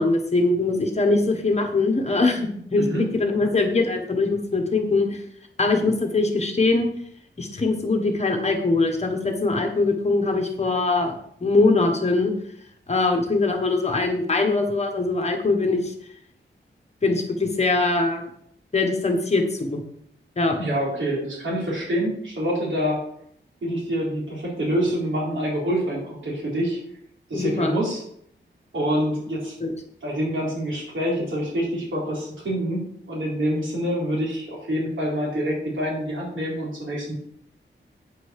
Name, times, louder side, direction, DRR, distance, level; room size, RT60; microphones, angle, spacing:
voice 1, 0.0-2.8 3.1-5.2 5.6-6.9 7.4-11.1 11.4-12.3 12.9-15.9 17.0-18.2 18.7-19.8 20.4-20.6 27.3-27.7 29.6-29.7, left 3 dB, 35° left, 4 dB, 1.4 m, -22 dB
voice 2, 20.6-23.0 23.6-26.8 27.3-28.0 28.7-29.5 30.0-37.1, equal, 80° right, -4 dB, 4.0 m, -26 dB
8.9 x 5.3 x 6.6 m, 0.67 s
wide cardioid pair, 175°, 20 cm